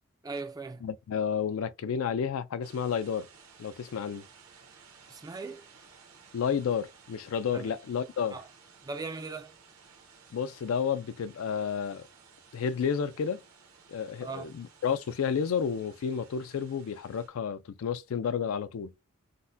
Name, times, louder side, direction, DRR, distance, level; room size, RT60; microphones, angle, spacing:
voice 1, 0.2-0.9 5.1-5.6 7.5-7.7 8.3-8.5 8.8-9.5 14.2-14.5, right 4 dB, 15° right, 0.3 m, -38 dB
voice 2, 0.8-3.3 3.6-4.3 6.3-8.4 10.3-12.0 12.5-13.4 13.9-18.9, left 7 dB, 70° left, 0.3 m, -31 dB
sound 1, 2.6-17.3, right 5 dB, 75° right, 1.0 m, -57 dB
3.7 x 2.1 x 2.6 m
head